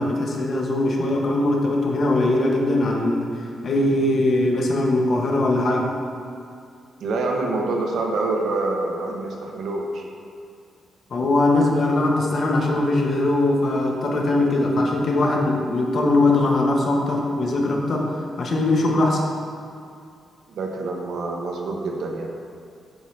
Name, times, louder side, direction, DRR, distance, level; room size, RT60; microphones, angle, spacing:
voice 1, 0.0-3.3 3.6-5.9 11.1-19.2, left 2 dB, 50° left, 0 dB, 1.1 m, -21 dB
voice 2, 7.0-10.0 20.5-22.3, right 2 dB, 75° right, 1 dB, 1.0 m, -26 dB
7.9 x 5.7 x 3.2 m, 2.4 s
cardioid pair, 110°, 0 cm